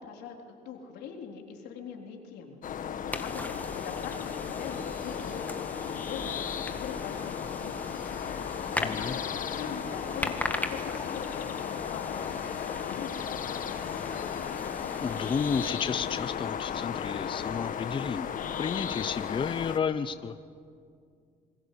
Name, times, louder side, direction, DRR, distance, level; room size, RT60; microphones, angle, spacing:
voice 1, 0.0-2.6 3.1-8.3 9.0-9.2 9.5-10.4 10.6-12.3 12.6-14.4, left 6 dB, 85° left, 2 dB, 3.6 m, -42 dB
sound 1, 2.6-19.8, left 8 dB, 50° left, 1.2 m, -35 dB
sound 2, 3.0-9.4, equal, 20° right, 4.2 m, -51 dB
sound 3, 3.1-15.7, left 2 dB, 10° left, 1.7 m, -40 dB
voice 2, 8.8-9.2 15.0-20.5, left 6 dB, 30° left, 12 dB, 0.7 m, -32 dB
27.5 x 21.0 x 8.3 m, 2.3 s
cardioid pair, 110°, 17 cm